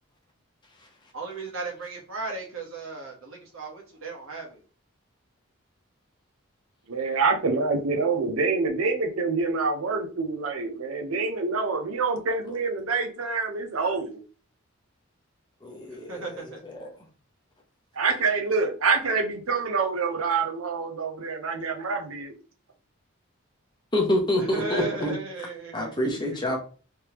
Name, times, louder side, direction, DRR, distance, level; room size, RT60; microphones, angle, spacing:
voice 1, 1.1-4.6 15.9-16.6 24.4-26.4, right 3 dB, 75° right, 0 dB, 1.3 m, -36 dB
voice 2, 6.9-14.2 17.9-22.3, right 4 dB, 90° right, 4 dB, 0.7 m, -26 dB
voice 3, 15.6-16.9 23.9-25.1 25.7-26.6, left 1 dB, 20° left, 0 dB, 0.9 m, -27 dB
3.4 x 3.3 x 2.9 m, 0.37 s
head